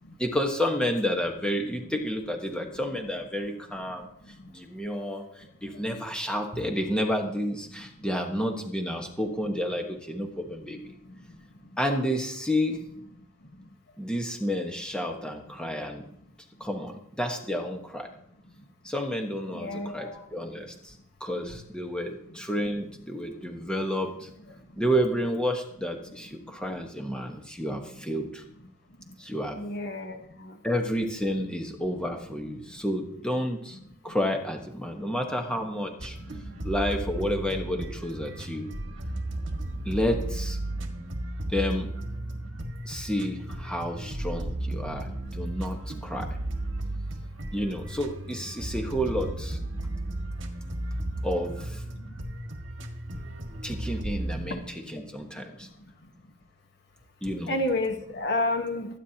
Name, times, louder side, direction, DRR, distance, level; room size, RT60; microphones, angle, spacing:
voice 1, 0.2-4.1 4.5-10.8 11.8-12.8 14.0-16.1 16.6-18.1 18.8-20.9 21.2-24.3 24.8-28.4 29.2-29.6 30.6-33.8 34.0-36.2 36.6-38.7 39.8-40.6 41.5-41.9 42.8-46.3 47.5-49.6 51.2-51.8 53.6-55.7 57.2-57.6, equal, 5° left, 1.3 m, -30 dB
voice 2, 19.5-20.3 29.5-30.5 57.5-59.0, left 2 dB, 55° left, 1.3 m, -30 dB
sound 1, 36.0-54.5, right 1 dB, 65° right, 1.8 m, -34 dB
23.5 x 9.5 x 2.9 m
head